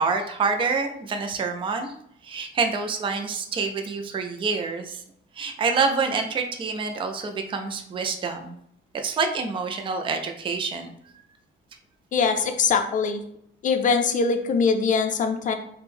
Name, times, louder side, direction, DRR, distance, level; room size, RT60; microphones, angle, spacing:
voice 1, 0.0-1.9 2.2-5.0 5.3-8.6 8.9-10.9, right 4 dB, 25° right, 5 dB, 0.4 m, -27 dB
voice 2, 12.1-13.2 13.6-15.5, left 5 dB, 40° left, 6 dB, 0.5 m, -22 dB
3.5 x 2.1 x 4.2 m, 0.72 s
cardioid pair, 145°, 21 cm